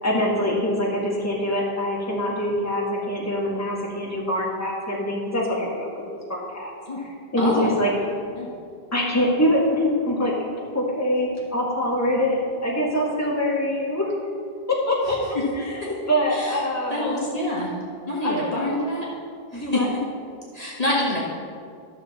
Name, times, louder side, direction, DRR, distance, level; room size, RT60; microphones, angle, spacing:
voice 1, 0.0-5.9 6.3-6.7 7.0-7.9 8.9-10.3 10.7-14.1 14.7-15.2 15.5-17.4 18.2-18.8 19.5-19.9, left 1 dB, 15° left, -4 dB, 1.7 m, -24 dB
voice 2, 7.4-7.7 8.3-8.5 16.3-16.6 16.9-17.7 18.1-19.1 19.5-19.8 20.5-21.2, left 1 dB, 40° left, -6 dB, 1.6 m, -26 dB
12.5 x 6.9 x 4.1 m, 2.2 s
omnidirectional pair, 1.0 m